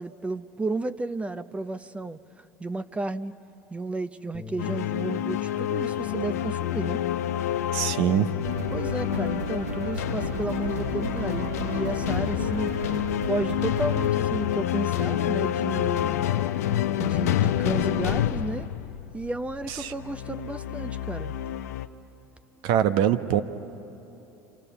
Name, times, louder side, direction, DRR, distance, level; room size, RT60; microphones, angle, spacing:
voice 1, 0.0-3.3 3.7-7.0 8.7-12.7 13.2-16.2 17.0-18.7 19.1-21.3, right 2 dB, 15° right, 12 dB, 0.7 m, -32 dB
Bass guitar, 4.3-10.6, left 8 dB, 10° left, 1.2 m, -48 dB
sound 1, 4.6-21.9, left 11 dB, 85° left, 0.7 m, -28 dB
voice 2, 7.7-8.3 19.7-19.9 22.6-23.4, right 10 dB, 65° right, 10 dB, 1.0 m, -23 dB
sound 2, 8.4-14.1, right 6 dB, 90° right, 0.7 m, -35 dB
29.5 x 27.0 x 7.0 m, 2.9 s
hypercardioid pair, 85°, 8 cm